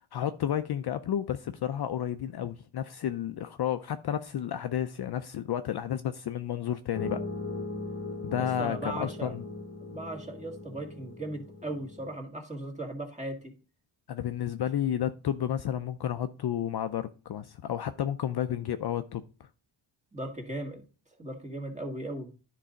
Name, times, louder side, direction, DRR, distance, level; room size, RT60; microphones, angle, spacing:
voice 1, 0.1-7.2 8.2-9.4 14.1-19.5, left 10 dB, 50° left, 0.5 m, -31 dB
sound 1, 6.9-12.2, left 3 dB, 30° left, 1.0 m, -39 dB
voice 2, 8.6-9.3 9.8-13.4 20.1-20.8 21.2-22.3, right 1 dB, 15° right, 1.9 m, -37 dB
10.0 x 4.0 x 5.1 m
cardioid pair, 110°, 50 cm